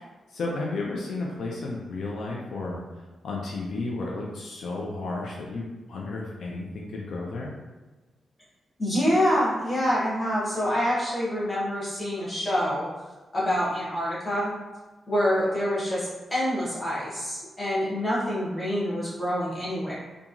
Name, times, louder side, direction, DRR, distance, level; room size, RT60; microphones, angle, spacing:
voice 1, 0.3-7.5, left 3 dB, 60° left, -2 dB, 0.4 m, -33 dB
voice 2, 8.8-12.9 13.3-14.5 15.1-20.0, equal, 10° left, -8 dB, 0.9 m, -26 dB
2.9 x 2.3 x 2.4 m, 1.2 s
wide cardioid pair, 180°, 0 cm